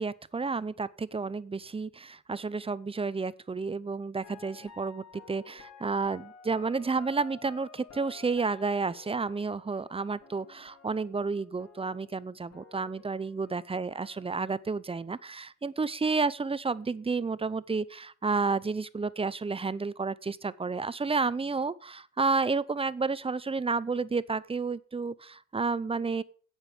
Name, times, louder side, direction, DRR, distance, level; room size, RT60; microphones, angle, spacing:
voice 1, 0.0-26.2, right 4 dB, 20° right, 17 dB, 0.6 m, -31 dB
sound 1, 4.2-12.2 12.5-14.3, left 6 dB, 55° left, 2.8 m, -53 dB
9.0 x 8.2 x 6.8 m, 0.42 s
cardioid pair, 90°, 30 cm